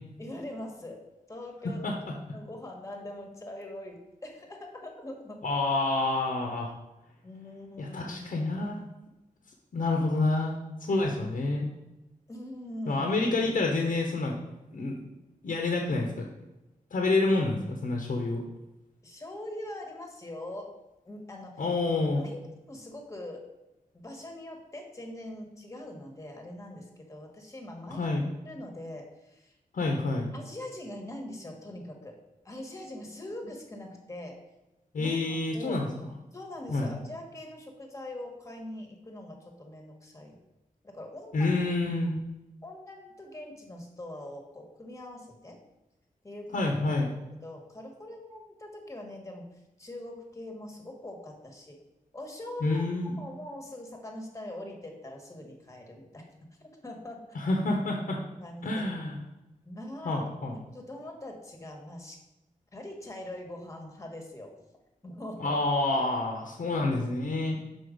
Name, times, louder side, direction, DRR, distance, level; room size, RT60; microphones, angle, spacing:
voice 1, 0.2-1.0 1.3-1.8 2.3-5.4 7.2-8.2 12.3-13.1 19.0-20.8 21.0-21.6 22.2-22.4 22.7-23.4 23.9-28.1 28.4-29.5 30.3-32.2 32.4-34.4 35.0-35.9 36.3-40.4 40.8-41.5 42.6-45.6 46.2-46.7 47.4-49.5 49.8-51.8 52.1-52.8 53.2-56.3 56.6-57.2 58.4-58.8 59.6-62.2 62.7-64.5 65.0-65.7 66.7-66.8, left 1 dB, 20° left, 2 dB, 1.2 m, -42 dB
voice 2, 5.4-6.7 7.8-8.8 9.7-11.7 12.9-14.4 14.7-15.0 15.4-16.3 16.9-18.4 21.6-22.3 27.9-28.2 29.7-30.3 34.9-35.9 36.7-36.9 41.3-42.2 46.5-47.1 52.6-53.2 57.3-58.2 58.6-59.2 60.0-60.6 65.4-67.6, left 2 dB, 75° left, 1 dB, 0.9 m, -28 dB
6.2 x 4.4 x 5.0 m, 0.98 s
wide cardioid pair, 140°, 14 cm